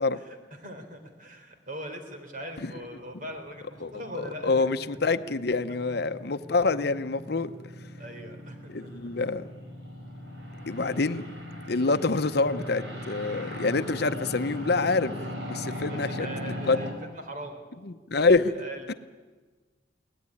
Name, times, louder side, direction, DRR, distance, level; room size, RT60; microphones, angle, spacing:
voice 1, 0.1-4.8 6.5-6.7 8.0-8.9 15.9-17.6 18.2-18.9, right 1 dB, 50° right, 6 dB, 3.7 m, -41 dB
sound 1, 2.3-16.9, left 1 dB, 80° right, 5.6 m, -40 dB
voice 2, 3.8-7.5 8.7-9.5 10.7-11.3 11.7-16.8 17.8-18.5 18.9-19.0, left 3 dB, 60° left, 11 dB, 0.8 m, -26 dB
23.5 x 18.0 x 9.8 m, 1.4 s
head